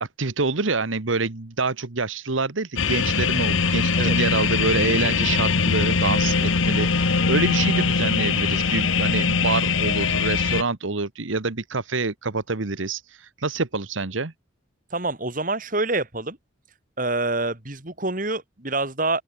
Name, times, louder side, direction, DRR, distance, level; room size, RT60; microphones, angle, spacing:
voice 1, 0.0-14.3, right 3 dB, 80° right, 1.4 m, -26 dB
sound 1, 2.8-10.6, left 4 dB, 85° left, 1.4 m, -22 dB
voice 2, 14.9-16.4 17.0-19.2, right 2 dB, 45° right, 3.2 m, -26 dB
open air
head